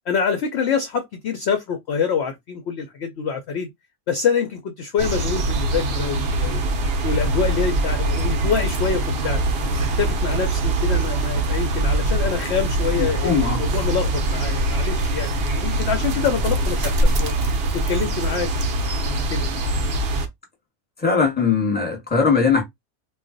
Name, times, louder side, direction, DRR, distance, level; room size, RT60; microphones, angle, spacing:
voice 1, 0.1-3.7 4.1-6.6 7.0-9.4 10.0-16.9 17.2-17.3 17.7-18.5 19.0-19.5, left 6 dB, 65° left, 0.6 m, -25 dB
sound 1, 5.0-20.3, right 2 dB, 60° right, 0.6 m, -23 dB
voice 2, 13.0-13.6 21.0-22.6, left 5 dB, 5° left, 0.9 m, -20 dB
2.4 x 2.2 x 3.8 m
omnidirectional pair, 1.6 m